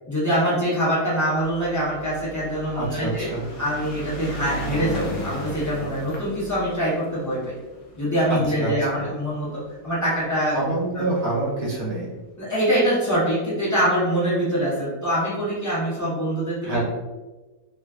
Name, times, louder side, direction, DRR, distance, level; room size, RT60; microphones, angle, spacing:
voice 1, 0.1-3.3 3.6-7.6 8.0-9.5 9.8-10.6 10.9-11.0 12.4-16.8, equal, 25° left, -10 dB, 0.4 m, -24 dB
sound 1, 1.4-9.9 10.7-10.8 11.0-11.1 11.3-11.4, equal, 70° left, 0.9 m, -36 dB
voice 2, 2.7-3.5 8.3-9.1 10.5-12.2 16.6-16.8, right 2 dB, 50° right, -5 dB, 0.9 m, -27 dB
3.1 x 2.3 x 2.3 m, 1.2 s
omnidirectional pair, 1.8 m